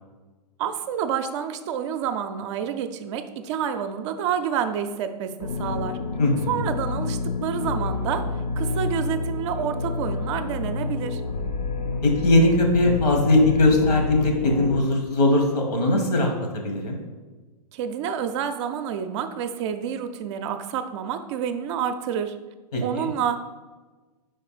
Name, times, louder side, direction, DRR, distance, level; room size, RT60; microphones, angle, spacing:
voice 1, 0.6-6.0 6.5-8.3 8.6-11.2 17.7-22.4 22.8-23.4, right 8 dB, 45° right, 8 dB, 0.5 m, -28 dB
sound 1, 5.4-14.8, left 3 dB, 85° left, 0.7 m, -28 dB
voice 2, 6.2-6.6 12.0-17.0 22.7-23.1, left 2 dB, 70° left, 3 dB, 1.7 m, -20 dB
5.0 x 4.3 x 4.9 m, 1.3 s
hypercardioid pair, 110°, 21 cm